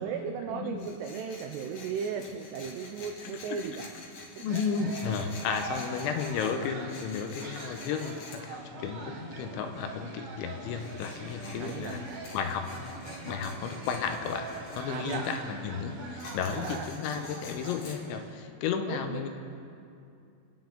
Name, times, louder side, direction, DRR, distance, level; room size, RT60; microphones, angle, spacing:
voice 1, 0.0-4.0 4.3-4.4 11.6-12.1 14.9-15.3 16.5-16.9 18.9-19.3, right 6 dB, 90° right, 5 dB, 2.3 m, -36 dB
voice 2, 0.5-0.9 3.5-3.6 4.4-12.0 12.3-12.7 13.3-14.5 14.8-19.3, left 6 dB, 80° left, 6 dB, 3.0 m, -33 dB
Tools, 0.8-8.4 10.6-15.4 16.2-17.9, left 3 dB, 65° left, 1.6 m, -47 dB
sound 1, 4.4-18.3, right 3 dB, 60° right, 2.4 m, -44 dB
sound 2, 8.7-16.8, equal, 35° left, 1.9 m, -48 dB
25.5 x 9.4 x 3.9 m, 2.5 s
omnidirectional pair, 5.6 m